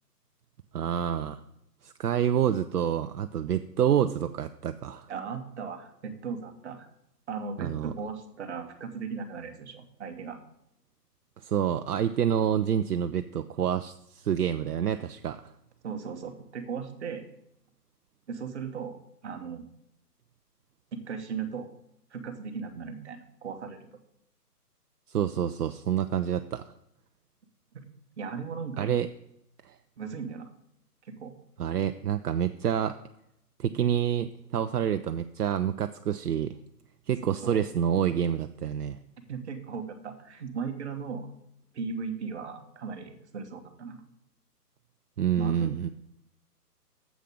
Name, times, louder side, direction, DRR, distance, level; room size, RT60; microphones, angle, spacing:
voice 1, 0.7-1.4 1.8-5.1 7.6-7.9 11.4-15.5 25.1-26.6 28.8-29.1 29.6-29.7 31.6-33.0 33.6-36.5 37.1-39.0 45.2-45.9, right 9 dB, 70° right, 10 dB, 0.6 m, -28 dB
voice 2, 5.1-6.9 7.3-10.4 15.8-17.3 18.3-19.7 20.9-21.7 22.1-23.9 27.7-27.8 28.2-28.9 30.0-30.5 31.0-31.3 37.2-37.6 39.3-41.3 41.7-44.0 45.4-45.8, right 5 dB, 45° right, 7 dB, 1.3 m, -37 dB
7.5 x 6.7 x 6.4 m, 0.80 s
figure-of-eight pair, 140°, 48 cm